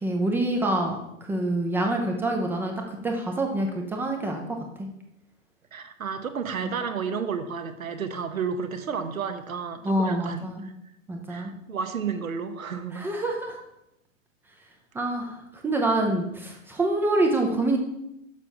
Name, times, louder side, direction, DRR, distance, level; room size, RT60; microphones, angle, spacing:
voice 1, 0.0-4.6 9.8-10.6 11.1-11.5 12.9-13.6 14.9-17.8, right 2 dB, 5° right, 1 dB, 0.4 m, -26 dB
voice 2, 5.7-10.7 11.3-13.0, right 6 dB, 80° right, 8 dB, 1.1 m, -32 dB
6.5 x 5.7 x 5.3 m, 0.83 s
figure-of-eight pair, 115°, 40 cm